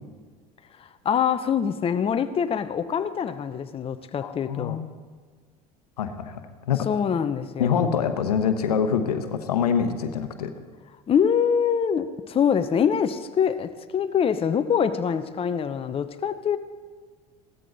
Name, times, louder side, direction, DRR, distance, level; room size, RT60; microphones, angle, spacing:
voice 1, 0.8-4.8 6.9-7.9 11.1-16.6, left 7 dB, 30° left, 10 dB, 0.8 m, -24 dB
voice 2, 4.2-4.9 6.0-6.4 6.7-6.9 7.6-10.5, left 7 dB, 90° left, 8 dB, 1.0 m, -25 dB
16.0 x 13.5 x 4.1 m, 1.5 s
hypercardioid pair, 80°, 19 cm